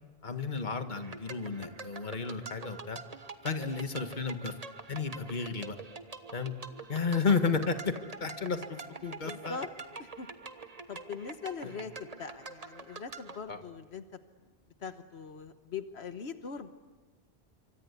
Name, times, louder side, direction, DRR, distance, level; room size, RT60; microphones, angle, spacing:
voice 1, 0.2-3.0 3.4-4.5 4.9-5.8 6.3-6.5 6.9-7.9 8.2-9.6 11.6-11.8 13.5-13.6, left 5 dB, 45° left, 7 dB, 1.8 m, -32 dB
sound 1, 0.9-13.4, right 3 dB, 35° right, 1.3 m, -46 dB
voice 2, 9.2-9.7 10.0-10.3 10.9-14.0 14.8-16.7, left 6 dB, 80° left, 9 dB, 1.4 m, -41 dB
27.0 x 25.0 x 8.3 m, 1.3 s
omnidirectional pair, 1.1 m